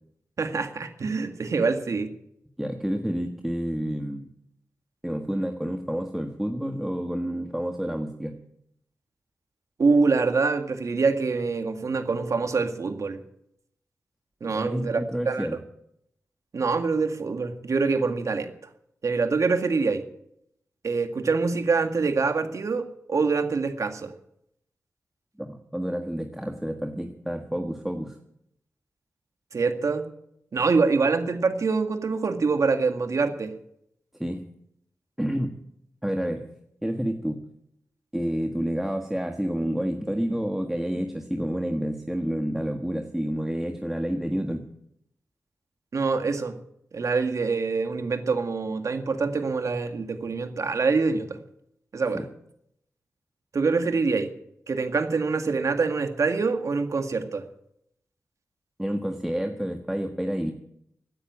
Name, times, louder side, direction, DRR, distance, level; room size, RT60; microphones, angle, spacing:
voice 1, 0.4-2.1 9.8-13.2 14.4-15.0 15.3-15.5 16.5-18.5 19.0-20.0 20.8-24.1 29.5-30.1 30.5-33.5 45.9-46.6 46.9-51.4 51.9-52.2 53.5-54.3 54.7-57.5, right 4 dB, 65° right, 7 dB, 2.1 m, -25 dB
voice 2, 2.6-4.3 5.0-8.3 14.4-15.6 25.4-28.2 34.2-34.4 35.2-35.6 36.0-36.5 36.8-37.4 38.1-44.6 52.1-52.3 58.8-60.5, equal, 5° right, 4 dB, 1.5 m, -29 dB
16.5 x 9.9 x 8.7 m, 0.75 s
wide cardioid pair, 80°, 6 cm